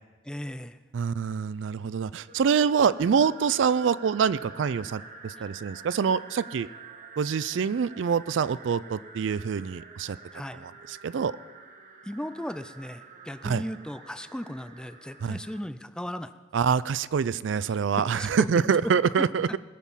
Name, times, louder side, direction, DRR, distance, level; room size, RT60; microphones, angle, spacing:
voice 1, 0.2-0.8 10.3-10.6 12.0-16.3 17.9-18.5, equal, 5° left, 11 dB, 0.5 m, -36 dB
voice 2, 0.9-6.7 7.2-10.2 10.6-11.3 13.4-13.6 15.2-15.4 16.5-19.6, right 6 dB, 70° right, 17 dB, 0.4 m, -25 dB
sound 1, 2.3-15.6, right 4 dB, 45° right, 1.1 m, -48 dB
20.5 x 7.2 x 5.6 m, 1.4 s
head